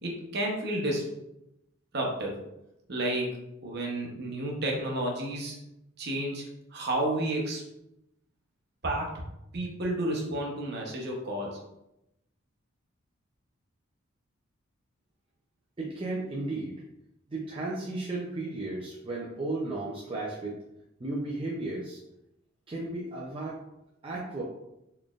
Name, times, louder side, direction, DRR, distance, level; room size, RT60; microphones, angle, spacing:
voice 1, 0.0-1.1 1.9-2.3 2.9-3.3 3.6-5.6 6.0-6.4 6.7-7.6 8.8-9.1 9.5-11.6, right 1 dB, 50° right, -1 dB, 0.8 m, -31 dB
voice 2, 15.8-16.8 17.3-20.6 21.0-22.0 22.7-23.6 24.0-24.4, right 2 dB, 25° right, -5 dB, 0.4 m, -34 dB
4.1 x 3.2 x 2.4 m, 0.86 s
head